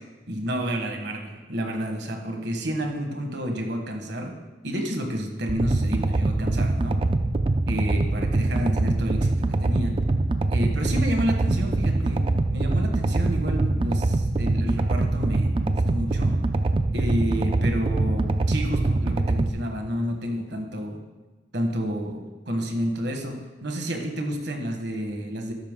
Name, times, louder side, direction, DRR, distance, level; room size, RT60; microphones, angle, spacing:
voice 1, 0.3-4.4 4.6-7.0 7.7-10.0 10.5-12.2 12.5-16.4 16.9-21.0 21.5-25.5, equal, 65° right, 4 dB, 1.3 m, -30 dB
sound 1, 5.5-19.5, right 2 dB, 30° right, 0.4 m, -23 dB
13.0 x 5.8 x 3.7 m, 1.2 s
head